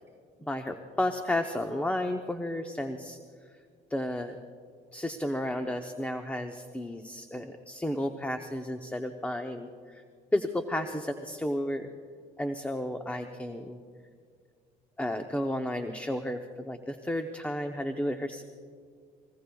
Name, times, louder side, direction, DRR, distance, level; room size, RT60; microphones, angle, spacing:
voice 1, 0.4-3.2 3.9-4.4 4.9-10.0 10.3-11.9 12.4-13.8 15.0-18.4, left 1 dB, 10° left, 5 dB, 0.8 m, -32 dB
30.0 x 20.5 x 2.3 m, 2.1 s
cardioid pair, 110°, 17 cm